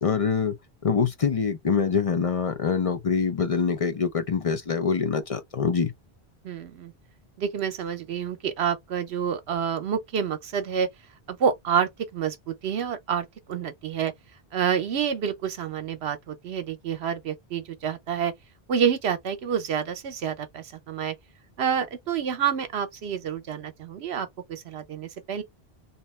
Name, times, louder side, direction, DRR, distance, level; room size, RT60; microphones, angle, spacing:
voice 1, 0.0-0.6 0.8-5.9, left 5 dB, 40° left, 0.5 m, -25 dB
voice 2, 6.4-6.9 7.4-10.9 11.3-14.1 14.5-18.3 18.7-21.1 21.6-25.4, right 8 dB, 80° right, 1.0 m, -28 dB
3.1 x 2.9 x 3.1 m
omnidirectional pair, 1.1 m